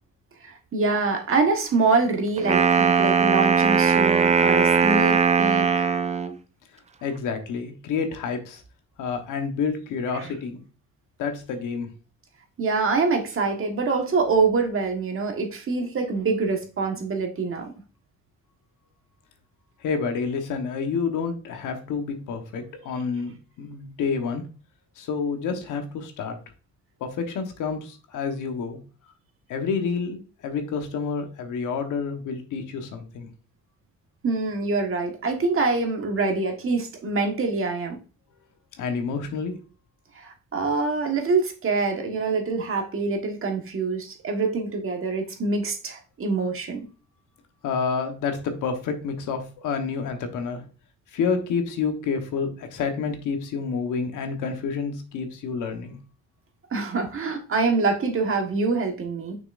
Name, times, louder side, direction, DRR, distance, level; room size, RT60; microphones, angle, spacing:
voice 1, 0.4-5.9 10.1-10.3 12.6-17.7 34.2-38.0 40.1-46.8 56.7-59.4, right 4 dB, 45° right, 3 dB, 1.5 m, -25 dB
Wind instrument woodwind instrument, 2.4-6.3, right 6 dB, 25° right, 0.5 m, -19 dB
voice 2, 7.0-8.6 9.0-10.6 11.2-11.9 19.8-24.4 25.0-26.4 27.0-28.8 29.5-33.3 38.8-39.5 47.6-50.6 51.1-56.0, left 5 dB, 85° left, 6 dB, 1.3 m, -29 dB
6.3 x 5.9 x 2.6 m, 0.36 s
cardioid pair, 90°, 30 cm